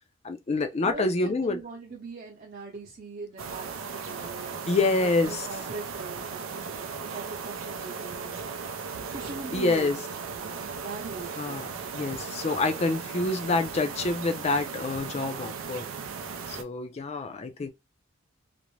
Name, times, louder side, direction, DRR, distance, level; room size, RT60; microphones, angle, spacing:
voice 1, 0.2-1.6 4.7-5.5 9.5-10.0 11.4-11.7 11.9-15.9 16.5-17.7, left 3 dB, 35° left, 0.4 m, -27 dB
voice 2, 0.8-4.6 5.0-6.9 7.1-8.4 9.1-10.0 10.3-11.8, right 4 dB, 45° right, 0.8 m, -41 dB
sound 1, 3.4-16.6, right 5 dB, 90° right, 0.4 m, -37 dB
2.5 x 2.1 x 3.0 m
head